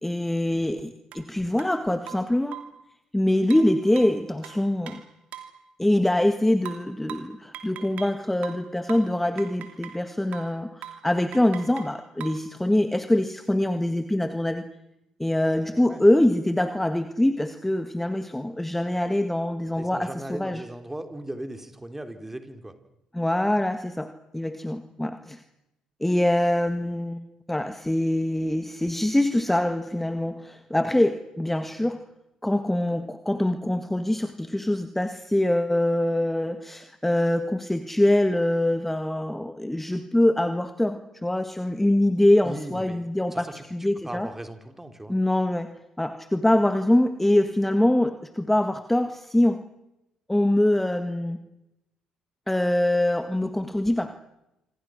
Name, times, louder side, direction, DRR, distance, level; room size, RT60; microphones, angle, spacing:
voice 1, 0.0-2.6 3.1-5.0 5.8-14.7 15.2-20.6 23.1-25.4 26.0-27.2 27.5-32.0 32.4-44.3 45.1-45.7 46.0-49.6 50.3-51.4 52.5-54.1, left 1 dB, 10° left, 9 dB, 1.7 m, -24 dB
sound 1, 1.1-1.2 1.6-1.7 2.1-2.8 3.5-5.6 6.7-8.2 8.4-10.0 10.3-10.6 10.8-11.1 11.3-12.5, right 10 dB, 60° right, 2.7 m, -41 dB
voice 2, 15.5-16.0 19.8-22.7 42.4-43.0 43.3-43.6 44.0-45.1, right 1 dB, 10° right, 7 dB, 3.4 m, -38 dB
26.5 x 25.0 x 6.4 m, 0.90 s
hypercardioid pair, 50°, 3 cm